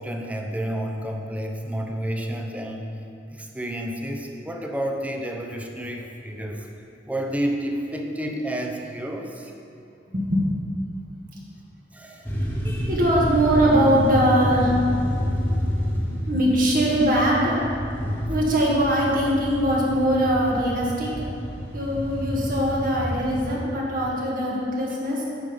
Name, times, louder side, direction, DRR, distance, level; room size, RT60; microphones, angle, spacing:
voice 1, 0.0-2.9 3.3-6.7 7.1-9.5 11.9-12.3, right 1 dB, 10° right, 2 dB, 0.7 m, -30 dB
voice 2, 10.1-10.5 12.9-14.9 16.3-17.6 18.3-21.1 21.7-25.2, equal, 50° right, -4 dB, 1.6 m, -21 dB
sound 1, 12.2-23.6, equal, 10° left, 1.1 m, -28 dB
9.0 x 5.4 x 5.1 m, 2.8 s
head